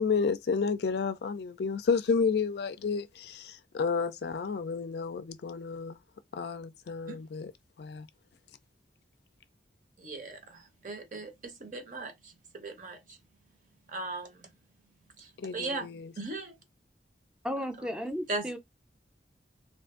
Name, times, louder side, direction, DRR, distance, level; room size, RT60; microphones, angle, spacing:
voice 1, 0.0-6.0 6.3-7.5 7.8-8.1 15.4-16.1, left 5 dB, 60° left, 0.4 m, -31 dB
voice 2, 10.0-13.2 13.9-14.5 15.2-15.9 16.2-16.5 17.8-17.9 18.3-18.5, right 2 dB, 45° right, 0.8 m, -38 dB
voice 3, 17.4-18.6, equal, 5° right, 0.5 m, -34 dB
2.5 x 2.5 x 3.6 m
head